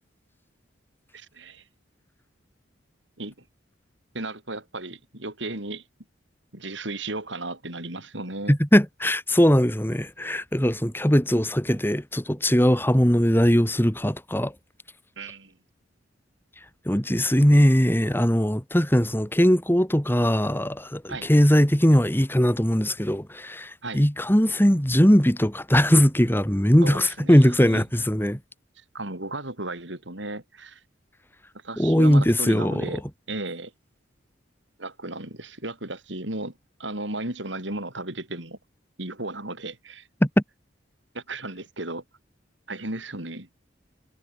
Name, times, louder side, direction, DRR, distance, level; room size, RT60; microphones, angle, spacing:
voice 1, 1.1-1.6 3.2-3.3 4.1-5.8 6.5-8.6 15.2-15.5 21.1-21.3 23.8-24.0 26.8-27.8 28.9-30.8 31.6-33.0 33.3-33.7 34.8-36.5 36.8-38.6 39.0-40.1 41.1-42.0 42.7-43.5, right 2 dB, 70° right, 5.7 m, -34 dB
voice 2, 8.5-14.5 16.9-28.4 31.8-32.9 40.2-40.3, equal, 10° left, 2.6 m, -20 dB
head